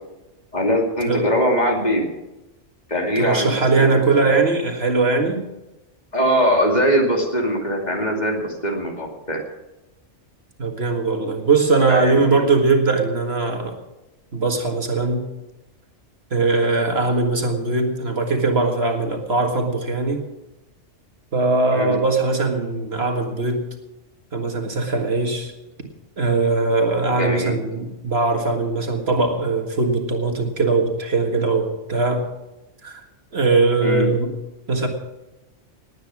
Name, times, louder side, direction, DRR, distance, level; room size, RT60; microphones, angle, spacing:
voice 1, 0.5-2.0 2.9-4.4 6.1-9.4 11.9-12.4 21.7-22.0 27.2-27.5 33.8-34.1, equal, 35° left, 1 dB, 2.6 m, -21 dB
voice 2, 3.2-5.4 10.6-13.8 14.3-15.2 16.3-20.2 21.3-23.7 24.3-25.5 26.2-32.3 32.8-33.0 33.3-34.3 34.7-34.9, right 3 dB, 60° right, 4 dB, 2.0 m, -20 dB
19.0 x 9.1 x 6.0 m, 1.0 s
omnidirectional pair, 1.2 m